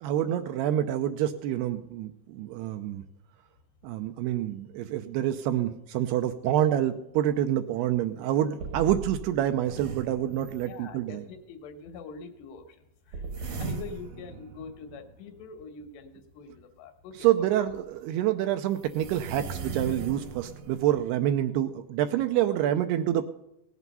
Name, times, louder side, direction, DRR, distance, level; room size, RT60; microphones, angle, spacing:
voice 1, 0.0-3.0 3.8-11.2 17.2-23.2, right 11 dB, 80° right, 8 dB, 2.5 m, -27 dB
sound 1, 7.3-7.4 7.9-8.0 8.6-11.1 13.1-15.5 17.7-17.8 18.8-21.0, right 5 dB, 60° right, 1.9 m, -38 dB
voice 2, 10.7-17.5, left 5 dB, 75° left, 7 dB, 3.3 m, -44 dB
17.5 x 8.4 x 5.4 m, 0.82 s
omnidirectional pair, 5.1 m